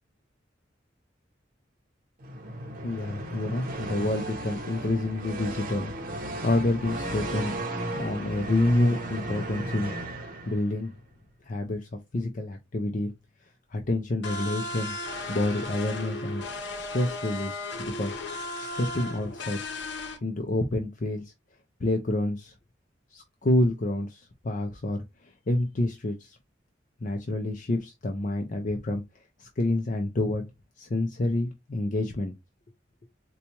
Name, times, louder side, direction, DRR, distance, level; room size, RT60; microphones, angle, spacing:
sound 1, 2.2-10.9, right 1 dB, 50° right, 0.7 m, -35 dB
voice 1, 2.8-5.9 6.4-7.6 7.9-10.9 11.5-13.1 13.7-14.9 15.3-16.4 16.8-18.1 18.7-19.6 20.2-21.3 21.8-22.5 23.1-26.4 27.0-29.0 29.4-30.4 30.8-32.4, left 1 dB, 45° left, 0.5 m, -28 dB
sound 2, 14.2-20.2, left 2 dB, 70° left, 0.8 m, -35 dB
4.0 x 2.3 x 2.9 m
head